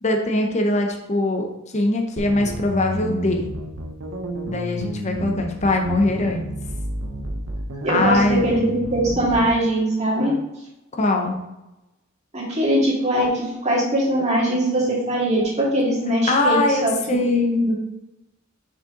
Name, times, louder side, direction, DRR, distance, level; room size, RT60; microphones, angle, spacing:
voice 1, 0.0-3.5 4.5-6.5 7.9-8.4 10.9-11.4 16.3-17.3, left 2 dB, 35° left, 2 dB, 0.8 m, -22 dB
sound 1, 2.2-9.5, right 1 dB, 85° right, 0.9 m, -31 dB
voice 2, 7.8-10.3 12.3-17.7, equal, 35° right, -5 dB, 2.2 m, -21 dB
6.3 x 5.5 x 3.8 m, 0.96 s
head